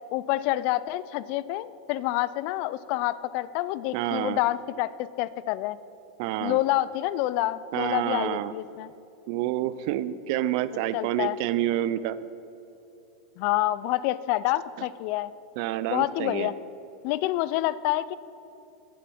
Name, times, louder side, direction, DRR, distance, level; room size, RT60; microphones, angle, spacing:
voice 1, 0.1-4.9 5.2-5.8 6.4-8.9 10.9-11.4 13.4-15.3 15.9-16.5 17.0-18.2, left 15 dB, 55° left, 17 dB, 0.3 m, -27 dB
voice 2, 3.9-4.4 6.2-6.6 7.7-8.5 9.3-12.2 15.6-16.5, right 13 dB, 60° right, 15 dB, 0.4 m, -28 dB
8.4 x 7.9 x 6.0 m, 2.9 s
hypercardioid pair, 105°, 3 cm